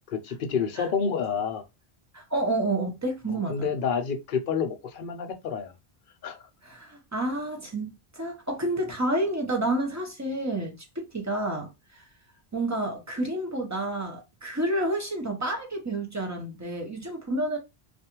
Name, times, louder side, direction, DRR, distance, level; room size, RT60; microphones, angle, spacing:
voice 1, 0.1-1.6 3.3-5.7 6.2-6.4, left 6 dB, 60° left, 0.7 m, -29 dB
voice 2, 2.1-3.7 6.6-11.7 12.5-17.6, right 1 dB, 20° right, 0.6 m, -29 dB
2.4 x 2.3 x 2.9 m
omnidirectional pair, 1.0 m